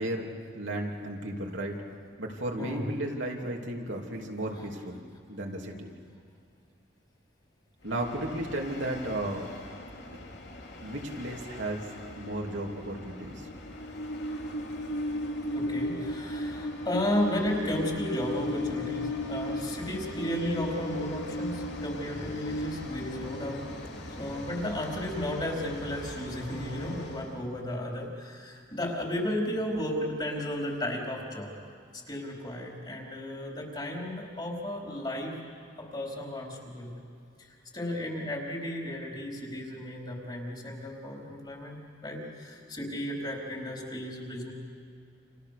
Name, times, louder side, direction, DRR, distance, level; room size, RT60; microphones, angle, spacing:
voice 1, 0.0-1.8 2.2-5.0 5.3-5.9 7.8-9.5 10.1-10.2 10.8-13.5, right 1 dB, 70° right, 0 dB, 3.1 m, -34 dB
Train, 7.9-27.3, left 1 dB, 65° left, 2.9 m, -37 dB
voice 2, 15.5-23.7 24.1-31.5 31.9-35.3 35.8-36.9 37.4-37.5 37.7-44.5, left 1 dB, 25° left, -1 dB, 4.5 m, -34 dB
30.0 x 27.5 x 6.8 m, 2.3 s
head